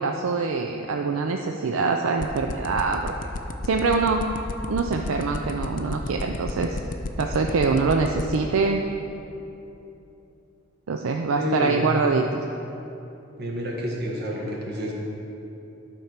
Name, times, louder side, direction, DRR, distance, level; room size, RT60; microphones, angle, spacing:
voice 1, 0.0-3.1 3.6-4.3 4.7-6.8 7.2-8.9 10.9-12.4, right 4 dB, 75° right, 4 dB, 0.4 m, -24 dB
sound 1, 2.2-8.4, left 3 dB, 40° left, 0.5 m, -30 dB
voice 2, 11.4-11.9 13.4-14.9, equal, 55° right, -2 dB, 1.6 m, -29 dB
11.5 x 4.4 x 5.9 m, 2.9 s
head